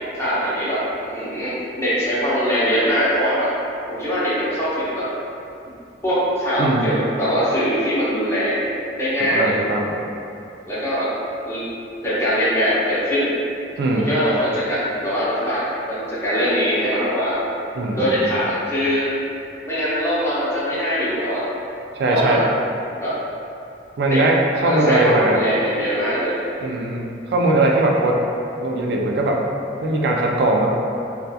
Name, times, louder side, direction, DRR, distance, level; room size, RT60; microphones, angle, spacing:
voice 1, 0.2-3.5 3.9-5.1 6.0-8.7 9.0-9.5 10.7-11.1 11.5-11.6 12.0-13.3 14.0-17.4 17.9-19.1 19.6-21.4 22.1-22.5 23.0-23.1 24.1-24.2 24.6-26.5, equal, 15° left, -10 dB, 0.6 m, -22 dB
voice 2, 6.6-6.9 9.2-10.0 13.8-14.1 17.7-18.4 22.0-22.4 24.0-25.4 26.6-28.2 28.6-29.4 29.8-30.8, right 2 dB, 60° right, 0 dB, 0.3 m, -20 dB
2.7 x 2.3 x 2.2 m, 2.6 s
head